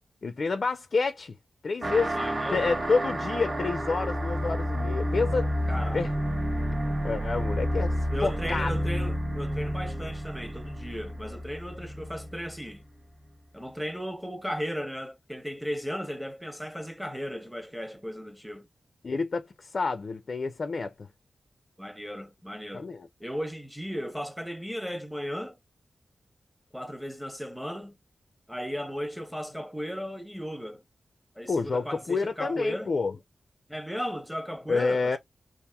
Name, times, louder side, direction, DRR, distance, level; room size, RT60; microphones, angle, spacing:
voice 1, 0.2-1.3 1.6-2.2 2.5-5.5 5.9-6.1 7.0-8.0 8.2-8.8 19.0-21.1 22.7-23.1 31.5-33.1 34.7-35.2, left 4 dB, 55° left, 0.4 m, -28 dB
sound 1, 1.8-12.8, equal, 35° right, 0.8 m, -30 dB
voice 2, 2.1-2.7 5.7-6.0 8.1-12.8 13.5-18.7 21.8-22.9 23.2-25.6 26.7-27.9 28.5-30.8 31.4-32.9 33.7-35.2, equal, ahead, 0.7 m, -35 dB
2.9 x 2.5 x 2.2 m
wide cardioid pair, 80°, 0 cm